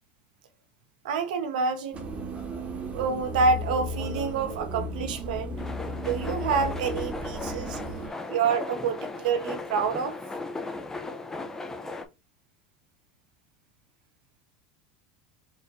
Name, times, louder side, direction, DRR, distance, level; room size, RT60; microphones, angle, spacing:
voice 1, 1.0-2.1 2.8-5.5 5.9-7.8 8.3-10.2, right 5 dB, 85° right, 1.1 m, -27 dB
sound 1, 1.9-8.1, equal, 30° right, 1.2 m, -35 dB
sound 2, 5.6-12.0, left 3 dB, 10° left, 0.7 m, -37 dB
4.9 x 2.7 x 3.3 m
supercardioid pair, 125°, 4 cm